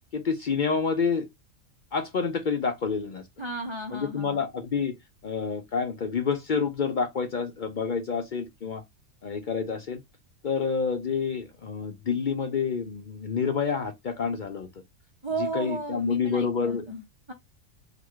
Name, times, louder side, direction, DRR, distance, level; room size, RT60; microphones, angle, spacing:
voice 1, 0.1-1.3 1.9-3.2 3.9-5.0 5.2-8.8 9.2-10.0 10.4-14.7 15.4-16.9, left 5 dB, 55° left, 0.5 m, -28 dB
voice 2, 3.4-4.4 15.2-17.3, right 3 dB, 30° right, 0.5 m, -34 dB
3.9 x 2.3 x 4.5 m
omnidirectional pair, 1.4 m